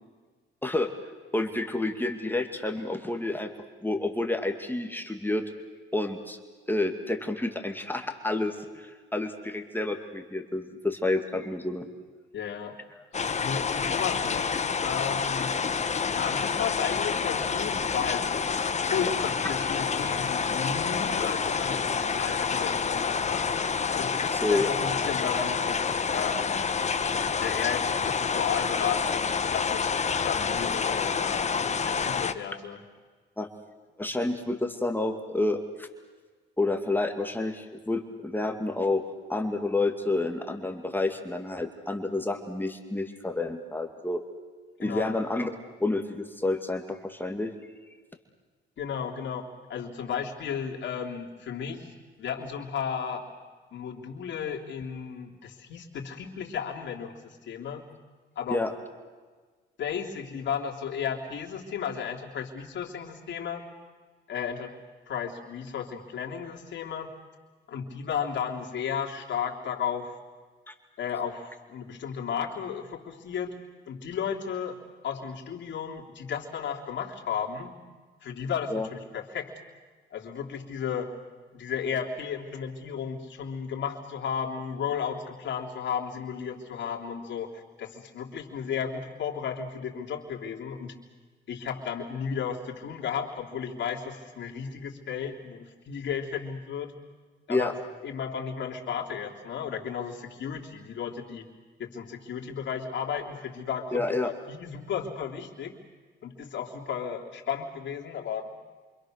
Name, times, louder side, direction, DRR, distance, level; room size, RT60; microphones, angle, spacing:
voice 1, 1.3-3.5 3.8-5.4 5.9-6.4 6.7-11.9 24.3-24.7 33.4-33.5 34.0-35.9 36.6-39.0 39.3-44.2 44.8-45.5 45.8-47.5 58.5-58.7 70.7-70.8 78.7-78.9 97.5-97.7 103.9-104.3, left 2 dB, 10° left, 4 dB, 2.3 m, -29 dB
voice 2, 12.3-12.8 13.4-15.5 16.1-18.3 18.9-23.5 23.9-26.6 27.4-31.5 31.8-32.8 44.8-45.2 48.8-53.2 53.7-57.8 58.3-58.6 59.8-63.7 64.3-64.7 65.1-67.1 67.7-70.1 71.0-73.6 73.9-74.8 75.0-77.8 78.2-79.5 80.1-81.1 81.5-90.9 91.5-96.9 97.5-97.7 98.0-101.5 101.8-105.7 106.2-108.5, left 7 dB, 70° left, 0 dB, 3.3 m, -34 dB
sound 1, 13.1-32.3, left 6 dB, 35° left, 1.3 m, -28 dB
28.0 x 25.5 x 6.6 m, 1.4 s
cardioid pair, 90°, 20 cm